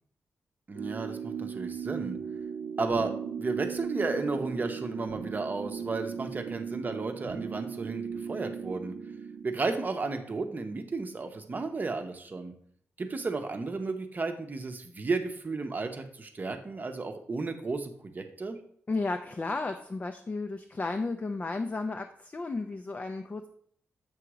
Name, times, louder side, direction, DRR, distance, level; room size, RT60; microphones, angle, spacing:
voice 1, 0.7-2.2 2.8-3.1 3.4-8.9 9.4-12.5 13.0-18.6, right 3 dB, 35° right, 6 dB, 0.7 m, -33 dB
sound 1, 0.7-9.5, right 7 dB, 75° right, 0.5 m, -37 dB
voice 2, 18.9-23.5, left 3 dB, 30° left, 6 dB, 0.4 m, -33 dB
6.9 x 2.9 x 4.8 m, 0.63 s
cardioid pair, 85°, 5 cm